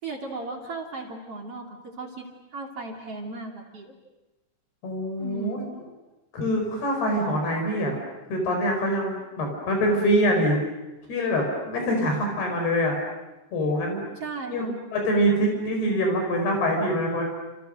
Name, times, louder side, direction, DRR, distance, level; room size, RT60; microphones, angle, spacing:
voice 1, 0.0-4.0 5.2-5.7 14.2-14.8, right 3 dB, 40° right, 1 dB, 3.3 m, -36 dB
voice 2, 4.8-5.6 6.3-8.0 8.3-10.6 11.1-13.0 13.5-14.0 14.5-14.6 14.9-17.3, equal, 70° left, 2 dB, 6.9 m, -24 dB
30.0 x 29.0 x 6.5 m, 1.0 s
omnidirectional pair, 4.8 m